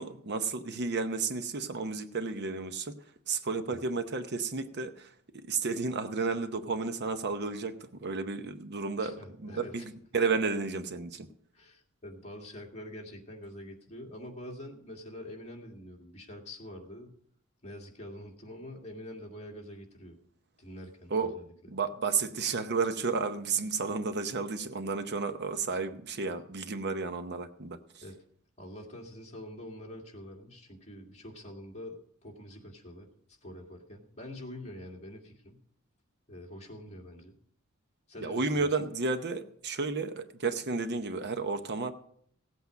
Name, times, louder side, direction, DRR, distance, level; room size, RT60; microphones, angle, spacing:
voice 1, 0.0-3.0 3.3-5.1 5.5-11.3 21.1-21.4 21.7-27.8 38.2-41.9, right 4 dB, 50° right, 9 dB, 0.8 m, -32 dB
voice 2, 9.0-9.9 11.5-17.1 17.6-20.2 20.6-21.4 28.0-28.2 28.6-35.6 36.3-37.3 38.1-38.9, left 1 dB, 30° left, 0 dB, 2.2 m, -45 dB
17.0 x 8.3 x 5.1 m, 0.65 s
head